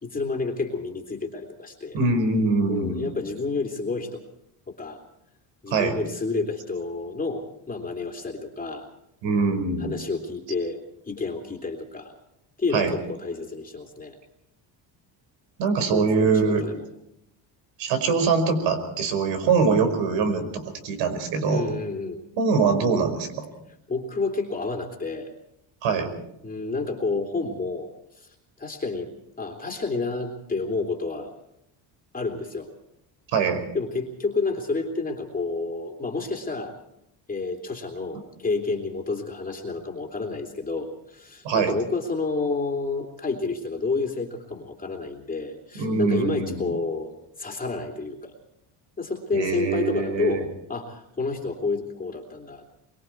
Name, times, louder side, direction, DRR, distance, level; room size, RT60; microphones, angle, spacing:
voice 1, 0.0-2.0 2.7-4.2 4.7-5.0 5.6-8.9 9.8-12.1 12.6-14.2 15.9-16.8 21.5-22.2 23.9-25.3 26.4-27.9 28.1-28.3 28.6-31.3 32.1-32.7 33.7-36.7 37.3-47.1 47.4-48.3 49.0-52.7, left 3 dB, 20° left, 1 dB, 3.0 m, -30 dB
voice 2, 1.9-3.1 5.7-6.0 9.2-9.9 12.7-12.9 15.6-16.6 17.8-21.6 22.4-23.5 25.8-26.1 33.3-33.6 41.4-41.7 45.8-46.7 49.3-50.4, right 4 dB, 75° right, 9 dB, 5.4 m, -23 dB
24.0 x 23.5 x 4.6 m, 0.79 s
cardioid pair, 150°, 44 cm